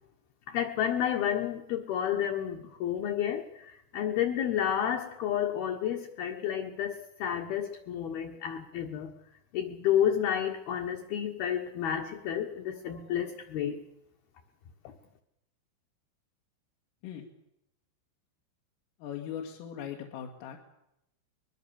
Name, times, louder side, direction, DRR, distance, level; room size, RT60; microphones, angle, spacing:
voice 1, 0.5-9.1 9.5-13.8, left 9 dB, 65° left, 3 dB, 2.7 m, -31 dB
voice 2, 19.0-20.6, left 9 dB, 85° left, 1 dB, 4.5 m, -39 dB
23.5 x 21.5 x 7.0 m, 0.82 s
omnidirectional pair, 5.8 m